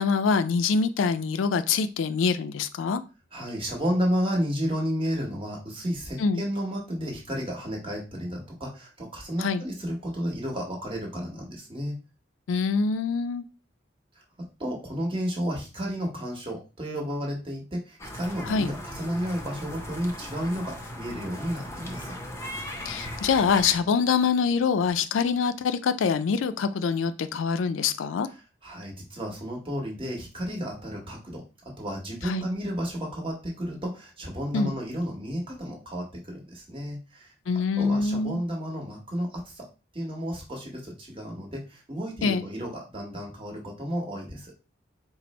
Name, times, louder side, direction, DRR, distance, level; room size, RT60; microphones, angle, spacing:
voice 1, 0.0-3.0 6.2-6.4 9.4-9.6 12.5-13.4 18.4-18.7 22.9-28.3 32.2-32.5 34.5-34.7 37.5-38.4 42.2-42.4, left 5 dB, 85° left, 12 dB, 0.4 m, -25 dB
voice 2, 3.3-12.0 14.6-22.1 28.2-31.4 31.8-37.3 37.8-39.7 39.9-44.5, equal, 30° right, -2 dB, 1.2 m, -32 dB
sound 1, 18.0-23.7, left 1 dB, 15° left, 0.6 m, -38 dB
4.2 x 2.0 x 4.2 m, 0.31 s
head